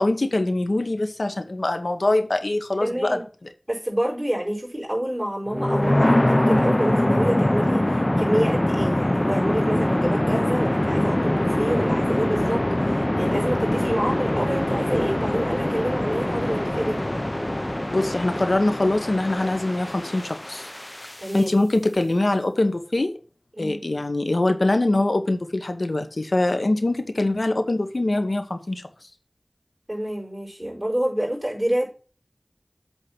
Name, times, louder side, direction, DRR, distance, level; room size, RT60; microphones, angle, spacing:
voice 1, 0.0-3.2 17.9-20.7 21.3-23.1 23.6-28.8, left 2 dB, 75° left, 8 dB, 1.0 m, -23 dB
voice 2, 2.8-3.2 3.7-17.2 21.2-21.5 23.6-23.8 29.9-31.9, right 1 dB, 25° right, -4 dB, 4.6 m, -27 dB
sound 1, 5.5-21.4, left 1 dB, 30° left, 0.6 m, -23 dB
8.1 x 3.7 x 6.0 m, 0.37 s
wide cardioid pair, 40°, 0 cm